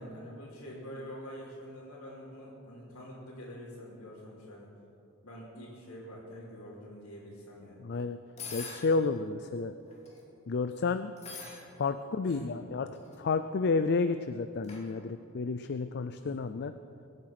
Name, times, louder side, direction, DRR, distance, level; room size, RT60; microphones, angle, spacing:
voice 1, 0.0-4.7 5.2-7.8 11.6-11.7 12.2-12.6 16.2-16.4, equal, 85° left, -9 dB, 3.1 m, -46 dB
voice 2, 7.8-8.2 8.5-9.7 10.5-11.1 11.8-12.9 13.2-16.7, left 4 dB, 50° left, 10 dB, 0.4 m, -31 dB
sound 1, 8.4-8.9 9.8-10.2 11.2-11.6 12.8-13.2 14.6-14.8, left 4 dB, 30° left, 2.6 m, -43 dB
23.0 x 8.8 x 6.0 m, 2.8 s
head